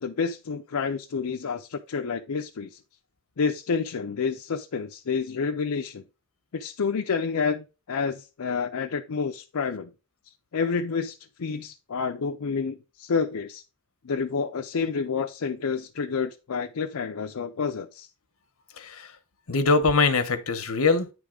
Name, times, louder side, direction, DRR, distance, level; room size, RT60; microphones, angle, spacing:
voice 1, 0.0-2.8 3.4-6.0 6.5-9.9 10.5-13.6 14.0-18.1, left 5 dB, 85° left, 0.5 m, -29 dB
voice 2, 18.8-19.2 19.5-21.1, left 3 dB, 70° left, 1.0 m, -23 dB
9.5 x 3.6 x 5.0 m
head